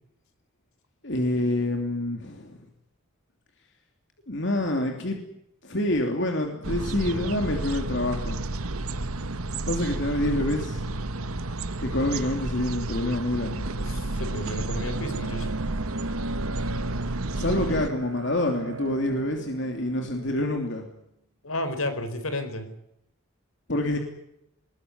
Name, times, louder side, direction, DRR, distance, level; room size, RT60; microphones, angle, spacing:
voice 1, 1.0-2.6 4.3-5.2 5.6-8.4 9.7-10.8 11.8-13.7 17.3-20.8 23.7-24.0, left 1 dB, 55° left, 3 dB, 3.0 m, -27 dB
sound 1, 6.6-17.9, right 2 dB, 85° right, 1.3 m, -31 dB
Bowed string instrument, 13.1-20.9, right 3 dB, 65° right, 1.4 m, -41 dB
voice 2, 13.8-15.5 21.4-22.7, left 1 dB, 80° left, 9 dB, 4.7 m, -32 dB
21.5 x 21.0 x 9.6 m, 0.80 s
head